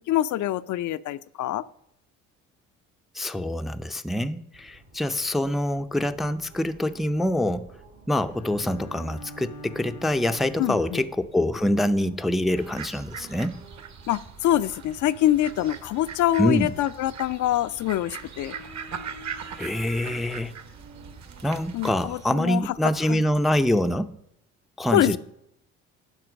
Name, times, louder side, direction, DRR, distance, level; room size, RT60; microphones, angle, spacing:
voice 1, 0.1-1.6 10.6-11.0 14.1-18.6 21.7-23.2 24.9-25.2, left 13 dB, 50° left, 0.5 m, -25 dB
voice 2, 3.1-7.7 8.1-13.6 16.4-16.7 19.6-20.5 21.4-24.1 24.8-25.2, left 1 dB, ahead, 0.5 m, -25 dB
sound 1, 4.5-24.0, right 3 dB, 85° right, 2.8 m, -51 dB
Bowed string instrument, 8.3-11.3, equal, 70° left, 0.9 m, -44 dB
sound 2, 12.6-22.3, right 7 dB, 45° right, 1.1 m, -41 dB
11.0 x 4.4 x 6.0 m
hypercardioid pair, 55°, 39 cm